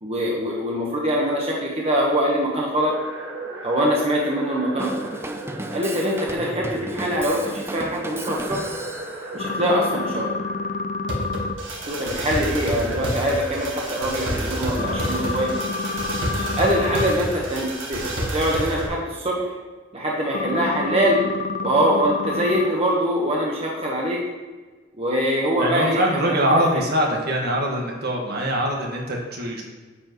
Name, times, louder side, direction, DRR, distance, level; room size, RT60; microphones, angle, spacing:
voice 1, 0.0-2.9 3.6-5.1 5.7-8.8 9.3-10.3 11.8-15.6 16.5-18.0 18.3-19.5 19.9-21.2 21.6-24.2 25.0-26.4, equal, 35° right, -3 dB, 1.2 m, -23 dB
sound 1, 2.8-18.9, right 1 dB, 80° right, 1.6 m, -31 dB
Drum kit / Drum, 4.8-9.2, right 1 dB, 15° right, 0.5 m, -34 dB
sound 2, 9.4-11.5 14.8-17.1 20.3-22.7, left 4 dB, 40° left, 0.4 m, -28 dB
voice 2, 25.6-29.6, equal, 55° right, -1 dB, 1.7 m, -23 dB
10.0 x 7.3 x 3.1 m, 1.4 s
head